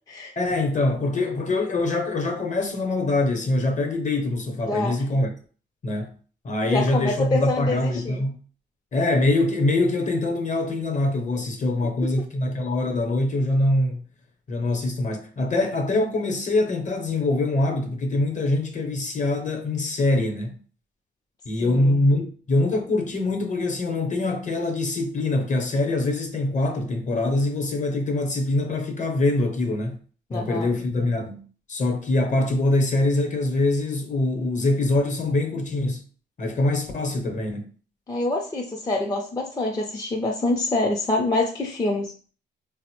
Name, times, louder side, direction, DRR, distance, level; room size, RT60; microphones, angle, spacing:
voice 1, 0.4-5.3 5.8-6.1 6.4-8.4 8.9-14.0 14.5-20.5 21.5-30.0 30.3-36.0 36.4-37.7, left 2 dB, 40° left, 0.8 m, -24 dB
voice 2, 4.7-5.0 6.6-8.2 12.0-12.3 21.6-22.0 30.3-30.7 38.1-42.1, left 2 dB, 20° left, 0.4 m, -26 dB
3.9 x 2.0 x 2.9 m
cardioid pair, 90°, 20 cm